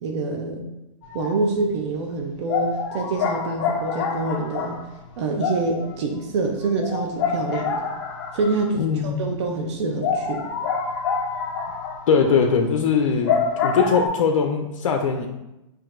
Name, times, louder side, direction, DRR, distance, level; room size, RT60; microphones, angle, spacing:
voice 1, 0.0-0.7 1.1-4.8 5.2-7.8 8.3-10.4, right 3 dB, 60° right, 2 dB, 0.6 m, -26 dB
sound 1, 1.0-1.5 1.8-1.9 2.5-8.8 9.2-9.3 9.6-9.7 10.0-14.1, left 5 dB, 40° left, 0.6 m, -27 dB
voice 2, 8.7-9.2 12.1-13.4 13.6-15.3, left 6 dB, 80° left, 4 dB, 0.5 m, -20 dB
5.8 x 2.5 x 2.5 m, 0.94 s
hypercardioid pair, 145°, 17 cm